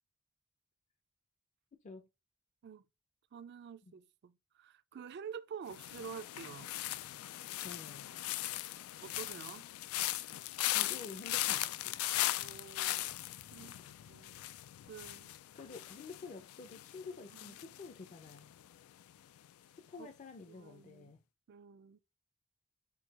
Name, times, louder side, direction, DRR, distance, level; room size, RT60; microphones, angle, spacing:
voice 1, 3.3-6.8 9.0-9.6 12.4-13.2 13.5-13.8 14.1-14.3 14.9-15.3 17.3-17.6 20.0-20.1 20.5-21.1 21.5-22.0, right 7 dB, 50° right, 0.4 m, -48 dB
sound 1, 5.7-18.7 19.0-19.5, left 15 dB, 90° left, 0.3 m, -39 dB
voice 2, 7.6-8.1 10.6-12.0 13.6-14.2 15.5-18.5 19.9-21.2, left 4 dB, 35° left, 0.5 m, -50 dB
4.6 x 2.3 x 4.6 m
head